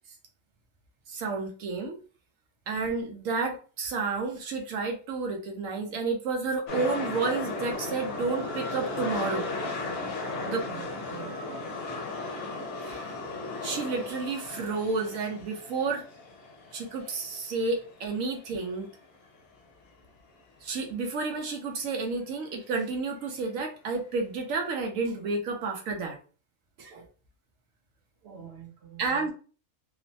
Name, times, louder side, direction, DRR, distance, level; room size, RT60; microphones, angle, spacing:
voice 1, 1.1-2.0 2.7-9.5 10.5-10.6 12.8-13.1 13.6-16.0 16.7-18.9 20.6-26.2 26.8-27.0 29.0-29.3, right 4 dB, 85° right, 1.1 m, -31 dB
sound 1, 6.7-18.7 19.0-19.1, left 3 dB, 65° left, 1.0 m, -36 dB
voice 2, 10.4-11.4 28.2-29.3, right 6 dB, 60° right, 1.0 m, -45 dB
3.0 x 2.0 x 2.7 m
omnidirectional pair, 1.4 m